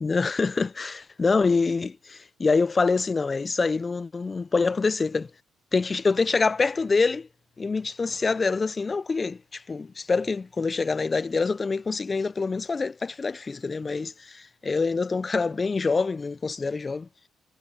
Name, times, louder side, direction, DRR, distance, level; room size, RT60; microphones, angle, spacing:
voice 1, 0.0-5.3 5.7-7.3 7.6-17.1, left 4 dB, 35° left, 0.6 m, -25 dB
supercardioid pair, 60°, 0 cm